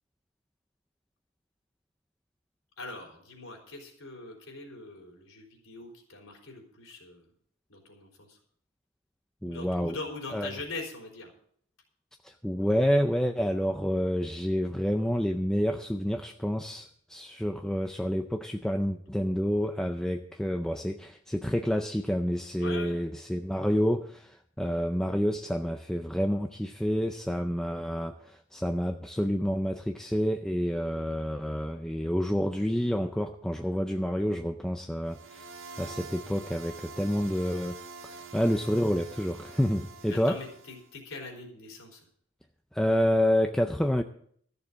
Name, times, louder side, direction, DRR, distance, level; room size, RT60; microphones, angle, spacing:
voice 1, 2.8-7.3 7.7-8.4 9.4-11.3 22.6-23.0 40.1-42.0, left 3 dB, 75° left, 1 dB, 3.9 m, -42 dB
voice 2, 9.4-10.0 10.3-10.5 12.2-35.5 35.8-40.4 42.7-44.0, equal, 5° left, 5 dB, 0.4 m, -28 dB
sound 1, 35.1-40.9, right 4 dB, 60° right, 1.2 m, -46 dB
14.0 x 6.9 x 7.3 m, 0.62 s
head